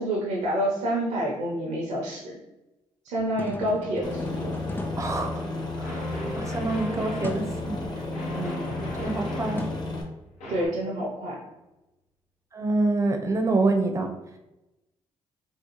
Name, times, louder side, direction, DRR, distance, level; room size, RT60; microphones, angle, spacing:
voice 1, 0.0-2.4 3.0-4.6 8.3-8.6 10.5-11.4, right 1 dB, 80° right, -4 dB, 0.8 m, -28 dB
sound 1, 3.2-6.0 7.2-7.6 9.6-10.6, left 2 dB, 15° left, 0.4 m, -38 dB
Aircraft, 4.0-10.0, left 2 dB, 35° left, 1.0 m, -32 dB
voice 2, 5.0-5.4 5.7-7.8 8.4-8.5 9.0-9.6 12.5-14.1, right 2 dB, 25° right, 3 dB, 0.6 m, -26 dB
sound 2, 5.8-7.3 8.1-9.6 10.4-10.7, equal, 80° left, 0.9 m, -38 dB
3.7 x 2.3 x 3.0 m, 0.99 s
supercardioid pair, 65°, 12 cm